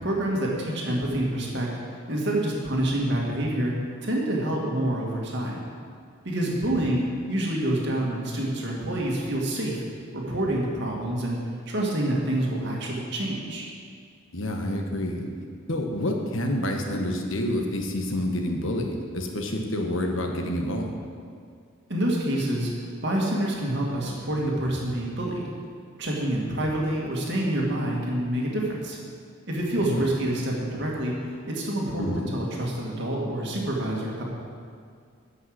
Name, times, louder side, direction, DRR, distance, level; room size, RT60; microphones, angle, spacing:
voice 1, 0.0-1.7 2.1-3.7 4.0-5.6 6.2-9.8 10.1-11.4 11.7-13.6 21.9-22.7 23.0-25.5 26.0-29.0 29.5-31.1 31.5-34.2, right 1 dB, 55° right, -2 dB, 2.1 m, -27 dB
voice 2, 6.5-6.9 14.3-15.3 15.7-20.9 29.8-30.1 32.0-32.3, left 1 dB, 65° left, 2 dB, 1.3 m, -28 dB
11.0 x 5.8 x 7.8 m, 2.2 s
head